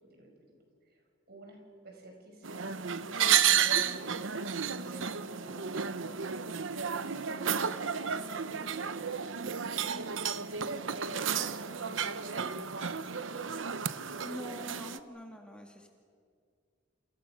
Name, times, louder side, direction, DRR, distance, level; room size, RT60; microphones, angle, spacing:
voice 1, 0.1-0.5 1.3-3.3 3.6-4.2 4.7-6.2 7.3-13.0 13.3-13.7, right 1 dB, 55° right, 2 dB, 5.7 m, -50 dB
sound 1, 2.4-15.0, right 8 dB, 90° right, 0.9 m, -32 dB
voice 2, 14.2-15.9, equal, 5° left, 2 dB, 2.0 m, -44 dB
29.0 x 28.0 x 6.2 m, 2.1 s
head